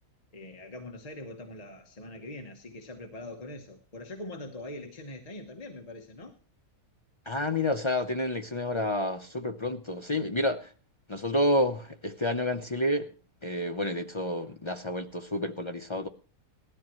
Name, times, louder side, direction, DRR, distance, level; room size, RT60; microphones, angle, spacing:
voice 1, 0.3-6.4, left 1 dB, 30° left, 1.0 m, -43 dB
voice 2, 7.3-10.7 11.1-13.1 13.4-16.1, left 1 dB, 45° left, 0.4 m, -29 dB
18.5 x 13.0 x 3.0 m
omnidirectional pair, 1.6 m